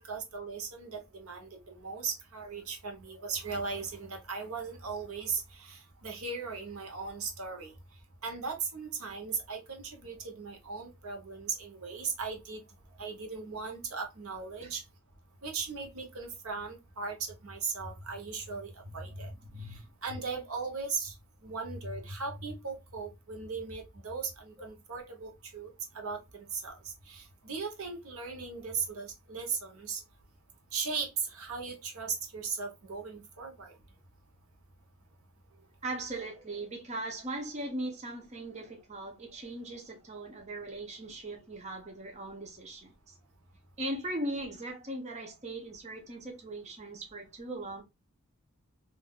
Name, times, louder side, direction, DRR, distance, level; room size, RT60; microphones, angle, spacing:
voice 1, 0.1-7.7 8.2-12.6 13.0-14.8 15.4-21.1 21.4-30.0 30.7-33.8, right 5 dB, 75° right, 0.9 m, -38 dB
voice 2, 35.8-43.2 43.8-47.8, right 1 dB, 30° right, 0.7 m, -39 dB
3.6 x 2.6 x 2.3 m
head